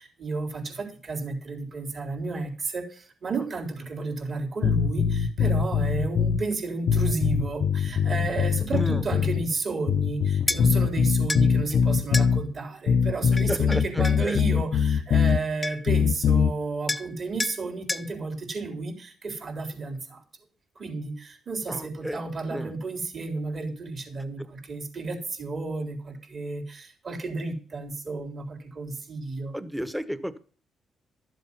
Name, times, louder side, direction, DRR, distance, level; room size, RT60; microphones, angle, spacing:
voice 1, 0.0-20.2 20.8-29.5, right 3 dB, 45° right, 3 dB, 3.9 m, -32 dB
sound 1, 4.6-6.4 6.9-9.5 9.9-12.4 12.9-15.4 15.9-16.5, left 6 dB, 60° left, 0.8 m, -22 dB
voice 2, 8.7-9.0 11.7-11.9 13.5-14.4 21.7-22.2 22.5-22.7 29.5-30.4, equal, 5° right, 14 dB, 1.2 m, -32 dB
sound 2, 10.5-10.6 11.3-11.5 12.1-12.3 13.4-14.2 15.3-15.4 15.6-16.0 16.9-17.1 17.4-17.6 17.9-18.1, left 2 dB, 15° left, 0.7 m, -30 dB
12.5 x 7.6 x 5.7 m, 0.42 s
cardioid pair, 90°, 0 cm